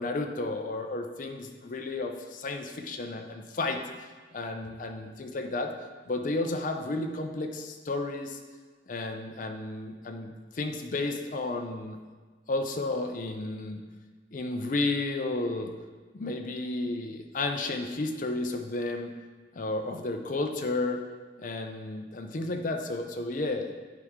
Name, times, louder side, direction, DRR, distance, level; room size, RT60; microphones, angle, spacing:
voice 1, 0.0-3.8 4.3-5.7 6.1-8.4 8.9-12.0 12.5-13.8 14.3-15.7 16.1-19.1 19.5-21.0 21.4-23.7, left 2 dB, 45° left, 4 dB, 0.5 m, -32 dB
9.9 x 4.8 x 3.6 m, 1.4 s
head